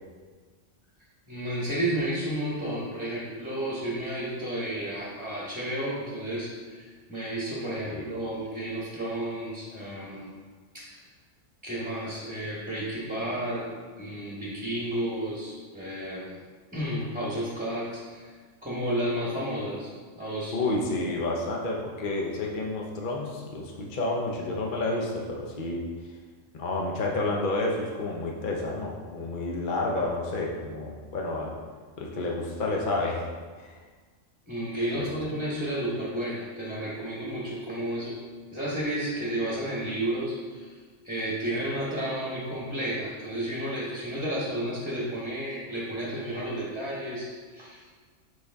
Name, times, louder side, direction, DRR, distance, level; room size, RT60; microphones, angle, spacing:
voice 1, 1.3-10.3 10.7-11.0 11.6-13.7 14.0-16.4 16.7-18.3 18.6-19.9 20.1-20.6 20.9-21.0 34.5-38.1 38.5-40.7 41.0-48.0, right 1 dB, 5° right, -7 dB, 1.1 m, -32 dB
voice 2, 20.5-25.8 26.5-31.5 32.0-33.2 33.6-33.8 34.9-35.0, left 2 dB, 45° left, -1 dB, 0.8 m, -30 dB
6.4 x 5.0 x 3.4 m, 1.5 s
omnidirectional pair, 1.3 m